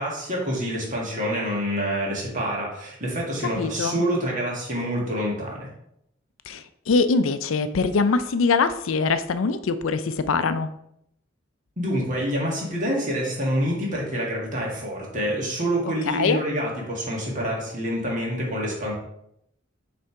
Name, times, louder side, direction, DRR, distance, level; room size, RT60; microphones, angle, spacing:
voice 1, 0.0-5.7 11.8-18.9, equal, 40° right, -3 dB, 1.9 m, -27 dB
voice 2, 3.6-4.0 6.5-10.7 16.1-16.4, left 4 dB, 85° left, 12 dB, 0.5 m, -23 dB
6.4 x 3.4 x 4.5 m, 0.77 s
head